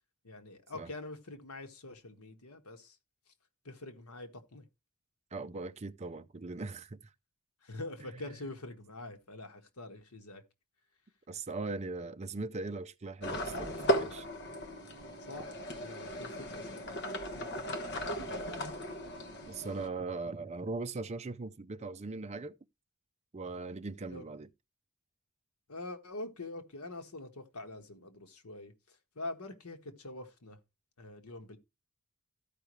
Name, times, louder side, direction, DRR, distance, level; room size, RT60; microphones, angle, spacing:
voice 1, 0.2-3.0 3.6-4.6 7.6-10.4 15.3-15.5 15.8-16.9 17.3-17.6 18.1-18.2 24.1-24.2 25.7-30.6 31.0-31.6, left 2 dB, 85° left, 1.5 m, -45 dB
voice 2, 5.3-7.0 8.1-8.3 11.3-14.3 19.5-22.6 23.3-24.5, right 3 dB, 30° right, 0.5 m, -40 dB
sound 1, 13.2-19.9, equal, 50° left, 1.3 m, -36 dB
14.0 x 5.1 x 3.1 m
head